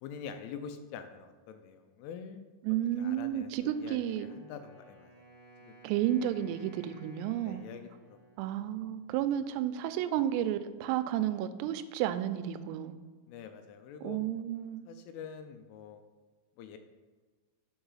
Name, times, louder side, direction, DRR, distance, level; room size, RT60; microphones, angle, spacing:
voice 1, 0.0-2.4 3.0-5.2 5.6-5.7 7.4-8.2 8.4-8.6 13.3-14.2 14.9-16.0 16.6-16.8, left 7 dB, 85° left, 8 dB, 2.9 m, -45 dB
voice 2, 2.6-4.3 5.8-7.6 8.4-12.9 14.0-14.8, right 11 dB, 90° right, 11 dB, 3.2 m, -32 dB
Wind instrument woodwind instrument, 3.6-9.6, right 2 dB, 30° right, 0.9 m, -58 dB
8.8 x 4.7 x 5.5 m, 1.4 s
omnidirectional pair, 5.8 m